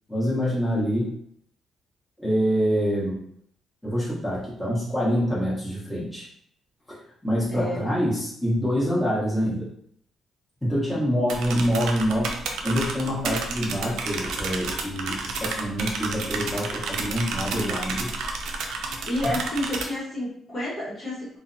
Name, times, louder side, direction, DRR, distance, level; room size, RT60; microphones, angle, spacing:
voice 1, 0.1-1.1 2.2-3.2 3.8-6.3 6.9-7.0 7.2-9.7 10.6-12.3 12.6-18.1 19.2-19.3, equal, 5° left, -8 dB, 1.1 m, -26 dB
voice 2, 7.5-7.9 19.1-21.4, left 1 dB, 40° left, -6 dB, 1.0 m, -30 dB
sound 1, 11.3-19.8, right 3 dB, 80° right, 0.3 m, -31 dB
2.5 x 2.1 x 2.6 m, 0.64 s
cardioid pair, 90°, 0 cm